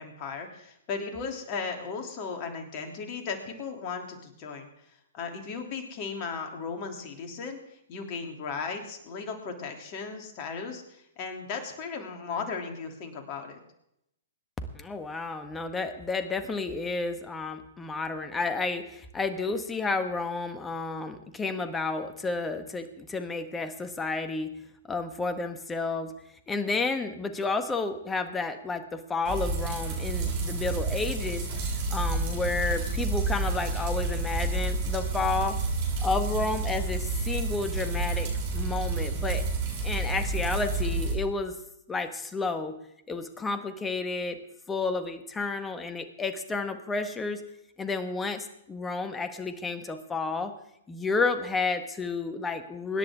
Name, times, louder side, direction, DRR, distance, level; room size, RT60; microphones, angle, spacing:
voice 1, 0.0-4.7 5.1-7.6 7.9-13.6, left 5 dB, 40° left, 3 dB, 3.1 m, -36 dB
voice 2, 14.7-24.5 24.9-26.1 26.5-35.6 36.0-39.4 39.8-41.5 41.9-42.8 43.1-44.4 44.7-47.4 47.8-50.5 50.9-53.0, left 3 dB, 15° left, 9 dB, 1.5 m, -31 dB
sound 1, 29.3-41.1, right 3 dB, 45° right, 7.3 m, -29 dB
25.0 x 10.5 x 3.7 m, 0.79 s
figure-of-eight pair, 115°, 0 cm